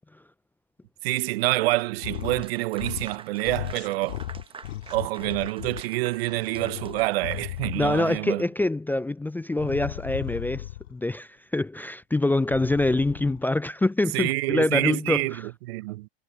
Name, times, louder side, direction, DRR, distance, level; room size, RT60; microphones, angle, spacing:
voice 1, 1.0-4.2 4.9-8.4 14.1-16.1, right 20 dB, 70° right, 0.6 m, -27 dB
sound 1, 2.0-2.5 2.7-3.2 3.4-5.8 6.3-8.2 9.5-11.0 12.4-13.4, left 14 dB, 80° left, 2.5 m, -36 dB
Clapping / Applause, 2.1-8.5, right 5 dB, 15° right, 1.1 m, -47 dB
voice 2, 7.7-15.2, left 2 dB, 5° left, 0.4 m, -25 dB
hypercardioid pair, 105°, 31 cm